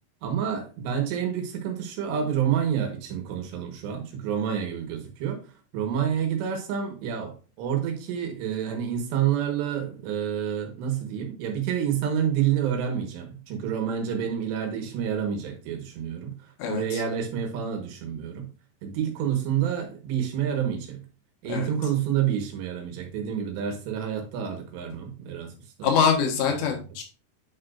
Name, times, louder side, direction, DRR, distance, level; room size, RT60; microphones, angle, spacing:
voice 1, 0.2-5.4 5.7-16.4 16.7-18.5 18.8-21.0 21.4-25.5 25.8-25.9, right 9 dB, 85° right, 3.5 m, -28 dB
voice 2, 25.8-27.0, left 6 dB, 85° left, 3.6 m, -24 dB
9.4 x 4.9 x 2.5 m
omnidirectional pair, 4.8 m